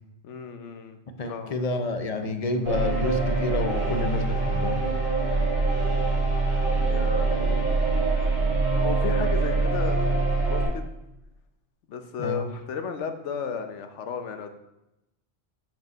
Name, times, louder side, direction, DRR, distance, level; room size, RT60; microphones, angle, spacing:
voice 1, 0.2-1.0 1.3-1.6 6.8-7.7 8.7-10.9 11.9-14.5, left 6 dB, 80° left, 7 dB, 1.1 m, -34 dB
voice 2, 1.2-4.8 12.2-12.5, left 2 dB, 45° left, 8 dB, 0.5 m, -29 dB
sound 1, 2.7-10.7, right 3 dB, 35° right, 2.7 m, -24 dB
5.3 x 5.3 x 6.0 m, 0.91 s
omnidirectional pair, 1.2 m